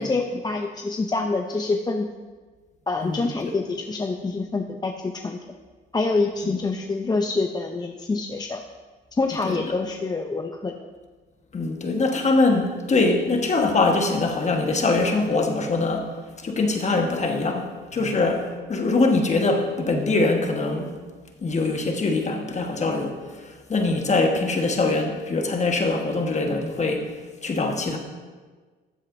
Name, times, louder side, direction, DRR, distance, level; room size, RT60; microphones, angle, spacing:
voice 1, 0.0-2.1 2.9-5.4 5.9-8.6 9.1-10.7 18.0-18.1, left 3 dB, 20° left, 4 dB, 0.5 m, -26 dB
voice 2, 3.0-3.5 6.4-6.6 9.4-9.7 11.5-16.1 16.4-21.0 21.4-27.1 27.4-28.0, left 3 dB, 35° left, 3 dB, 1.3 m, -23 dB
13.0 x 7.6 x 2.6 m, 1.4 s
cardioid pair, 90°, 20 cm